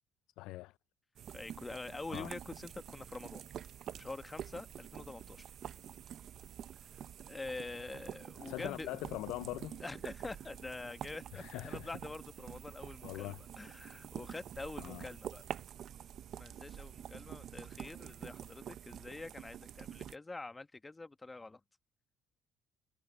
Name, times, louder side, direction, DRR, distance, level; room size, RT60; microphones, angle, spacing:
voice 1, 0.4-0.8 2.1-2.3 8.4-9.8 11.3-11.9 13.0-13.4 14.8-15.1, left 18 dB, 80° left, 0.4 m, -42 dB
sound 1, 1.2-20.2, right 10 dB, 60° right, 0.8 m, -47 dB
voice 2, 1.3-3.4 3.9-5.5 6.7-9.0 9.8-15.4 16.4-21.6, left 3 dB, 20° left, 1.2 m, -46 dB
sound 2, 12.3-17.6, right 21 dB, 85° right, 5.2 m, -75 dB
supercardioid pair, 85°, 0 cm